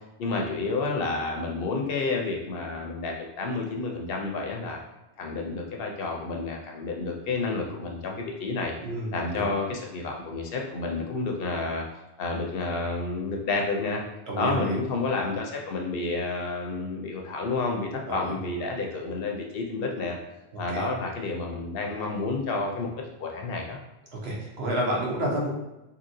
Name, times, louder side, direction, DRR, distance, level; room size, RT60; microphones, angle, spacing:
voice 1, 0.2-4.8 5.2-8.7 9.1-11.8 12.2-14.0 14.3-20.2 20.6-22.9 23.2-23.8, left 3 dB, 65° left, 1 dB, 0.7 m, -30 dB
voice 2, 8.8-9.5 14.3-14.8 18.1-18.4 20.7-20.9 24.2-25.5, right 1 dB, 75° right, -3 dB, 1.0 m, -29 dB
2.8 x 2.7 x 2.6 m, 0.99 s
omnidirectional pair, 1.1 m